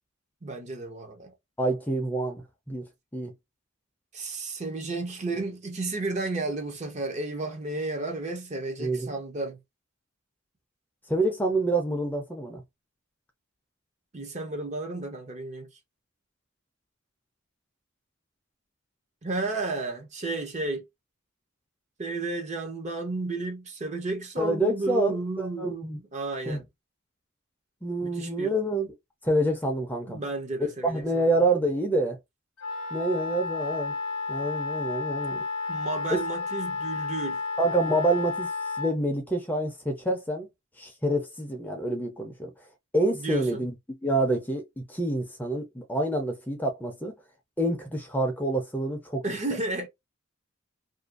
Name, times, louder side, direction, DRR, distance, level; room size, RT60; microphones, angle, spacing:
voice 1, 0.4-1.3 4.1-9.6 14.1-15.7 19.2-20.8 22.0-26.7 28.0-28.5 30.1-31.4 35.7-37.4 43.1-43.6 49.2-49.9, right 2 dB, 35° right, 0.6 m, -32 dB
voice 2, 1.6-2.9 3.1-3.3 8.8-9.1 11.1-12.6 24.4-26.0 26.5-26.6 27.8-28.9 29.2-30.2 30.8-32.2 32.9-33.9 34.3-35.4 36.1-36.2 37.6-38.5 38.8-40.5 40.8-42.5 42.9-43.7 44.0-47.1 47.6-49.4, right 1 dB, 10° left, 0.5 m, -27 dB
Wind instrument woodwind instrument, 32.6-39.0, left 4 dB, 90° left, 0.6 m, -32 dB
2.6 x 2.3 x 2.4 m
head